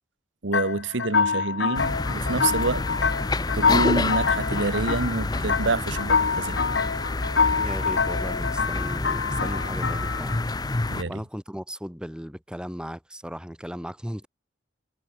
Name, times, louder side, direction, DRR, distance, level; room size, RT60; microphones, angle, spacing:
voice 1, 0.4-2.9 3.5-6.6 10.9-11.1, right 3 dB, 85° right, 1.2 m, -27 dB
sound 1, 0.5-10.4, left 5 dB, 70° left, 0.9 m, -26 dB
sound 2, 1.7-11.0, left 2 dB, 20° left, 0.6 m, -28 dB
voice 2, 7.5-10.4 11.1-14.3, equal, 5° right, 3.6 m, -36 dB
head